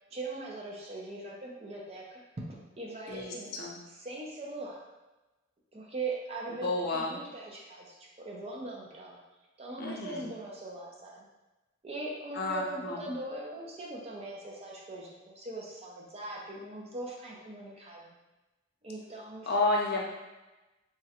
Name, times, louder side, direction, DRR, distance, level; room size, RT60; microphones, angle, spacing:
voice 1, 0.1-2.2 2.5-3.5 4.0-4.8 5.7-9.2 9.6-11.2 11.8-18.1 18.8-19.6, right 2 dB, 30° right, -2 dB, 0.5 m, -40 dB
voice 2, 3.1-3.8 6.6-7.2 9.8-10.3 12.3-13.1 19.5-20.0, left 2 dB, 50° left, -2 dB, 0.5 m, -31 dB
3.6 x 2.1 x 2.8 m, 1.1 s
head